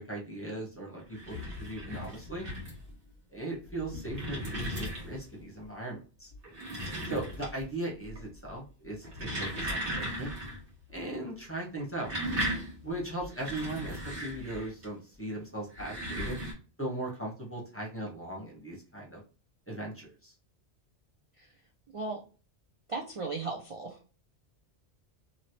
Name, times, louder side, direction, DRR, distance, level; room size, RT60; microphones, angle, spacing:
voice 1, 0.1-2.5 3.3-6.3 7.0-10.3 10.9-12.1 12.8-16.4 16.8-19.2 19.7-20.3, right 1 dB, 15° left, -1 dB, 0.9 m, -38 dB
sound 1, 1.0-2.9 3.6-5.3 6.3-7.7 8.0-8.5 8.9-10.6 10.9-11.0 11.8-14.9 15.6-16.5, equal, 55° right, 1.6 m, -37 dB
voice 2, 21.9-22.2 22.9-24.0, right 3 dB, 40° right, 0 dB, 0.5 m, -36 dB
3.1 x 2.7 x 2.7 m, 0.36 s
omnidirectional pair, 1.1 m